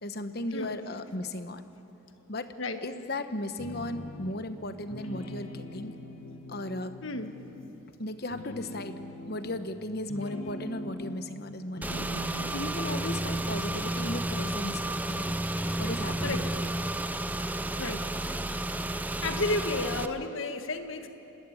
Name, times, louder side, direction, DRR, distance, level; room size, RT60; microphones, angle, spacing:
voice 1, 0.0-1.6 2.3-2.5 2.8-5.9 6.5-7.0 8.0-9.0 9.3-15.4 15.8-16.5, left 1 dB, 45° left, 9 dB, 1.1 m, -36 dB
sound 1, 3.6-4.5 4.8-7.9 8.2-11.4 11.7-14.4, equal, 85° left, 2.1 m, -42 dB
voice 2, 7.0-7.4 16.2-16.5 17.8-18.1 19.2-21.1, left 2 dB, 65° left, 7 dB, 1.6 m, -32 dB
Car / Engine, 11.8-20.1, right 1 dB, 10° right, 0.5 m, -32 dB
26.5 x 19.5 x 9.4 m, 3.0 s
head